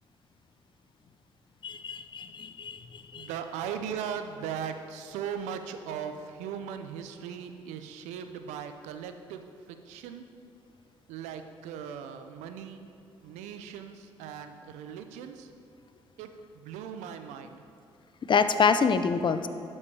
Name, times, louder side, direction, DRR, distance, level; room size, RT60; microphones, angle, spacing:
voice 1, 1.6-3.3 18.3-19.5, left 5 dB, 40° left, 10 dB, 0.6 m, -26 dB
voice 2, 3.1-9.4 9.7-10.3 11.1-12.9 13.2-15.5 16.2-17.7, right 8 dB, 80° right, 8 dB, 0.6 m, -38 dB
12.0 x 5.4 x 4.8 m, 2.7 s
hypercardioid pair, 55°, 12 cm